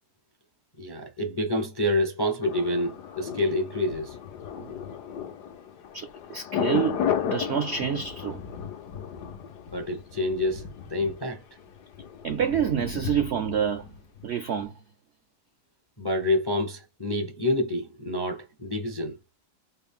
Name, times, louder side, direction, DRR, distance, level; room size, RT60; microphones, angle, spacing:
voice 1, 0.8-4.2 9.7-10.6 10.9-11.4 16.0-19.2, left 1 dB, 35° left, 0.3 m, -27 dB
Thunder, 2.4-14.3 14.6-14.7, left 8 dB, 80° left, 1.3 m, -34 dB
voice 2, 5.9-8.4 12.2-13.9 14.2-14.7, right 8 dB, 75° right, 0.6 m, -28 dB
4.2 x 2.0 x 3.5 m
omnidirectional pair, 1.8 m